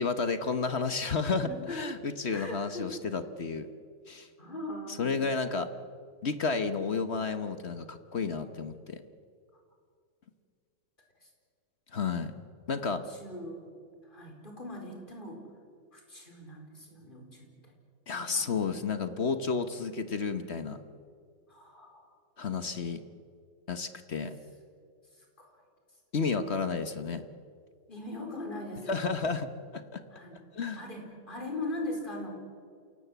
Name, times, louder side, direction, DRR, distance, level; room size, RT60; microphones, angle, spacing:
voice 1, 0.0-3.7 4.1-4.3 5.0-5.7 6.2-9.0 11.9-12.3 12.7-13.0 18.1-20.8 22.4-23.0 23.7-24.4 26.1-27.2 28.9-29.5 29.7-30.0 30.5-30.8, left 4 dB, 40° left, 10 dB, 1.1 m, -31 dB
voice 2, 1.4-1.8 2.3-2.9 4.4-5.1 11.2-11.3 12.8-13.8 14.0-15.4 15.9-17.7 18.2-18.5 21.5-22.1 25.1-25.6 27.9-29.0 30.1-30.4 30.7-32.4, left 2 dB, 25° left, 2 dB, 4.7 m, -40 dB
27.5 x 18.0 x 8.2 m, 2.3 s
omnidirectional pair, 2.0 m